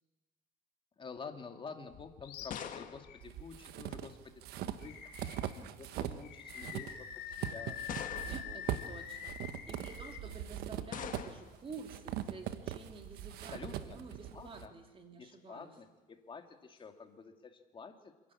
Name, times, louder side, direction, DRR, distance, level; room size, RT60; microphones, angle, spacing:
voice 1, 1.0-4.2 4.7-7.8 8.2-8.6 10.3-10.4 13.4-14.0 14.3-14.7 15.2-18.1, left 5 dB, 30° left, 5 dB, 2.4 m, -49 dB
sound 1, 1.9-4.2 5.3-5.7 6.6-6.7 7.9-8.7 10.9-11.7, left 9 dB, 50° left, 1.6 m, -45 dB
Animal, 2.2-2.6 3.1-3.2 4.8-5.6 6.2-10.2, left 9 dB, 70° left, 2.9 m, -45 dB
sound 2, 3.2-6.2 6.5-14.7, right 11 dB, 70° right, 1.2 m, -41 dB
voice 2, 8.3-9.4 9.7-15.7, right 4 dB, 30° right, 4 dB, 2.6 m, -50 dB
27.0 x 11.0 x 8.6 m, 1.2 s
supercardioid pair, 95°, 17 cm